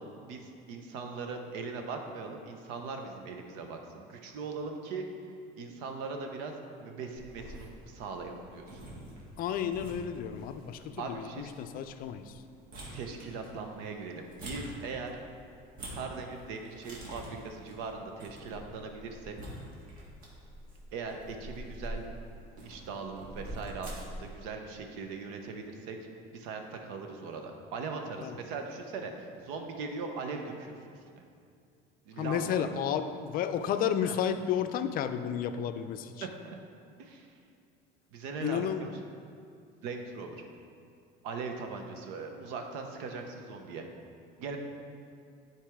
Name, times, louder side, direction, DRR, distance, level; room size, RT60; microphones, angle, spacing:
voice 1, 0.0-5.0 5.6-6.5 6.8-8.8 11.0-11.5 12.9-15.1 15.9-19.5 20.9-22.1 22.6-26.0 26.3-31.2 32.1-32.7 34.0-34.1 36.4-36.6 37.0-37.3 38.1-38.9 39.8-40.4 41.2-43.9 44.4-44.6, right 4 dB, 90° right, 4 dB, 0.9 m, -40 dB
sound 1, 7.2-24.3, right 1 dB, 50° right, 1.8 m, -46 dB
voice 2, 9.4-12.4 28.2-28.4 32.2-36.3 38.4-38.9, left 9 dB, 50° left, 10 dB, 0.4 m, -32 dB
10.5 x 4.6 x 3.6 m, 2.4 s
cardioid pair, 135°, 19 cm